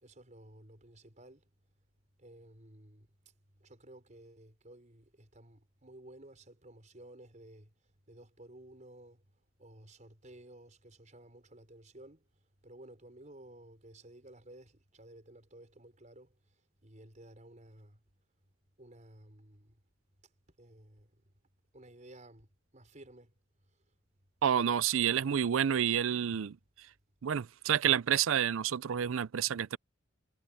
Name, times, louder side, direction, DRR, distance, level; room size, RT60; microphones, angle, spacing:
voice 1, 0.0-1.4 2.2-3.1 3.6-7.7 8.1-9.2 9.6-12.2 12.6-16.3 16.8-18.0 18.8-19.7 20.6-21.1 21.7-22.5 22.7-23.3, right 1 dB, 35° right, 5.3 m, -54 dB
voice 2, 24.4-26.6 27.2-29.8, right 9 dB, 80° right, 0.5 m, -29 dB
head